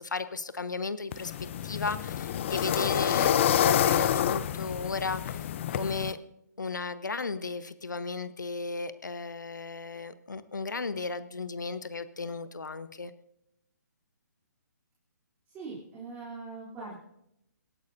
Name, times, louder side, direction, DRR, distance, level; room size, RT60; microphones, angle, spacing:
voice 1, 0.0-1.3 1.6-6.2 6.6-13.1, left 4 dB, 80° left, 13 dB, 1.0 m, -35 dB
sound 1, 1.1-6.1, left 10 dB, 40° left, 0.7 m, -27 dB
voice 2, 15.5-17.0, right 4 dB, 20° right, -4 dB, 3.3 m, -41 dB
26.0 x 11.5 x 2.7 m, 0.80 s
figure-of-eight pair, 135°, 10 cm